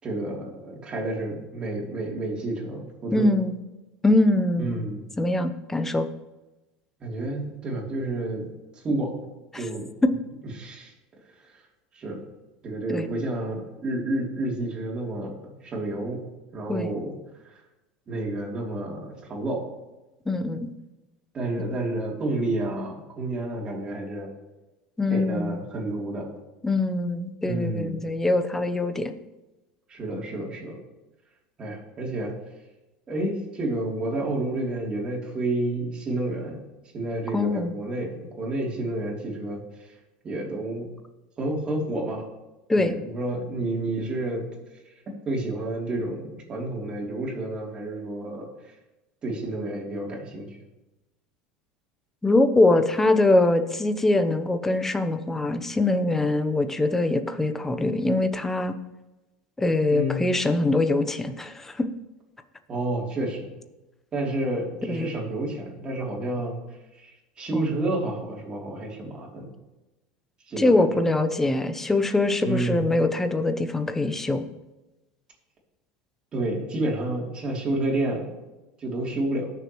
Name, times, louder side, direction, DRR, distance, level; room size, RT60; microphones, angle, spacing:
voice 1, 0.0-3.3 4.6-5.0 7.0-9.3 9.6-9.9 10.6-10.9 11.4-11.5 11.9-12.2 12.6-16.2 16.5-17.1 17.4-17.5 18.1-19.7 21.3-24.3 25.1-26.3 27.4-28.0 29.9-30.8 31.6-32.4 33.1-36.6 36.9-39.9 40.2-40.9 41.4-42.2 42.7-44.5 45.1-48.7 49.2-50.6 59.9-60.2 62.7-63.5 64.1-66.6 66.9-69.5 70.5-70.9 72.4-72.9 76.3-78.3 78.8-79.5, right 2 dB, 30° right, -2 dB, 3.2 m, -30 dB
voice 2, 3.1-3.5 4.0-4.8 5.2-6.1 9.5-9.7 10.0-10.1 12.9-13.1 16.7-16.9 20.3-20.7 25.0-25.6 26.6-29.1 37.3-37.7 42.7-42.9 52.2-58.7 59.6-61.9 64.9-65.1 67.5-67.7 70.6-74.5, left 2 dB, 10° left, 9 dB, 0.8 m, -23 dB
18.5 x 6.7 x 3.1 m, 1.1 s
supercardioid pair, 120°, 3 cm